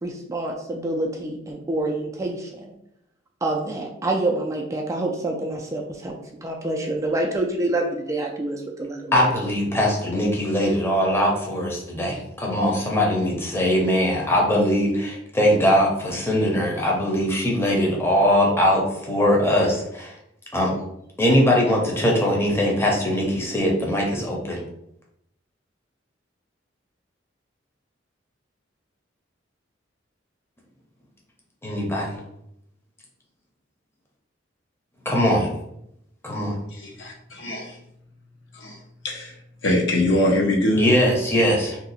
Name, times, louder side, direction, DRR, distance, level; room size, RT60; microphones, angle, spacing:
voice 1, 0.0-2.7 3.4-9.3, right 2 dB, 15° right, 0 dB, 0.3 m, -27 dB
voice 2, 9.1-18.8 19.1-20.1 20.5-20.7 21.2-24.6 31.6-32.2 35.0-35.5 36.2-36.6 40.7-41.8, equal, 15° left, -2 dB, 0.7 m, -21 dB
voice 3, 36.7-37.7 38.6-38.8 39.0-39.3 39.6-40.9, left 1 dB, 70° left, -1 dB, 0.8 m, -22 dB
2.7 x 2.3 x 4.0 m, 0.78 s
head